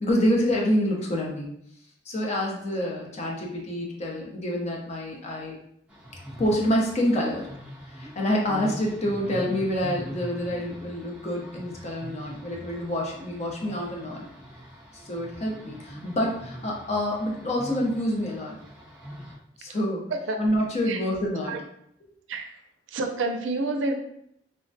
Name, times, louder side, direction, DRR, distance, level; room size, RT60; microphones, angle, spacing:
voice 1, 0.0-1.5 2.1-5.6 6.4-7.5 8.0-14.2 15.0-18.5 19.6-20.1 20.4-21.6, equal, 35° left, -2 dB, 0.6 m, -27 dB
sound 1, 5.9-19.4, equal, 5° right, 0.6 m, -42 dB
voice 2, 22.9-23.9, right 2 dB, 80° right, 4 dB, 0.4 m, -28 dB
3.3 x 2.1 x 2.6 m, 0.72 s
head